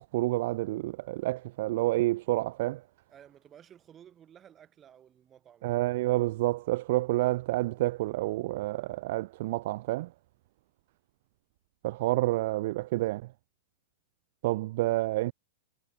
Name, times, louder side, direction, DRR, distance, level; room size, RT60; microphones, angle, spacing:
voice 1, 0.0-2.8 5.6-10.1 11.8-13.2 14.4-15.3, right 18 dB, 45° right, 0.4 m, -29 dB
voice 2, 3.1-5.7, right 9 dB, 15° right, 7.6 m, -55 dB
supercardioid pair, 170°, 0 cm